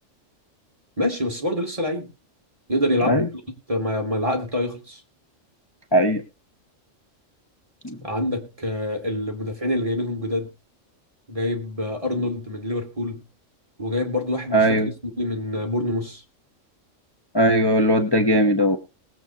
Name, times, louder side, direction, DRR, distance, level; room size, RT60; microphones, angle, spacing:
voice 1, 1.0-2.1 2.7-3.3 3.7-5.0 8.0-10.5 11.3-13.2 13.8-14.9 15.2-16.2, left 1 dB, 25° right, 2.8 m, -26 dB
voice 2, 14.5-14.9 17.3-18.8, equal, 20° left, 1.2 m, -19 dB
21.0 x 8.1 x 2.9 m
omnidirectional pair, 1.3 m